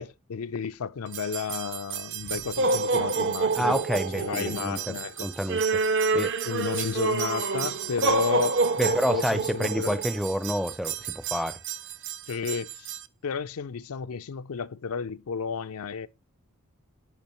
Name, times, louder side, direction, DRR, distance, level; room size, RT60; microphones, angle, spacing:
voice 1, 0.0-3.8 4.1-5.4 6.5-10.0 12.3-13.0 13.2-16.1, left 6 dB, 75° left, 0.5 m, -32 dB
sound 1, 1.1-13.0, right 4 dB, 55° right, 0.6 m, -28 dB
voice 2, 3.6-5.6 6.1-6.3 8.8-11.6, equal, ahead, 0.4 m, -28 dB
10.5 x 5.0 x 3.0 m
head